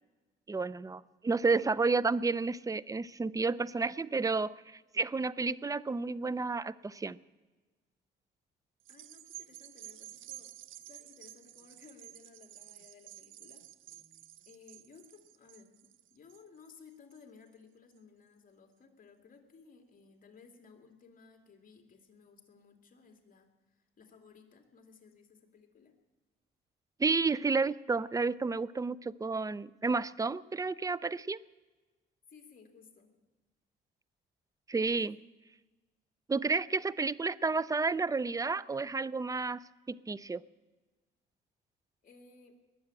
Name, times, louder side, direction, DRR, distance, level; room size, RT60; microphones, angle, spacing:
voice 1, 0.5-7.2 27.0-31.4 34.7-35.2 36.3-39.6 39.9-40.4, right 4 dB, 15° right, 19 dB, 0.5 m, -31 dB
voice 2, 3.4-3.9 8.9-14.2 14.5-25.9 32.3-33.2 35.1-35.3 42.0-42.5, left 5 dB, 45° left, 3 dB, 2.7 m, -58 dB
sound 1, 8.8-17.5 18.0-18.1, right 14 dB, 80° right, 0.6 m, -52 dB
21.0 x 7.8 x 8.8 m, 1.2 s
cardioid pair, 90°, 20 cm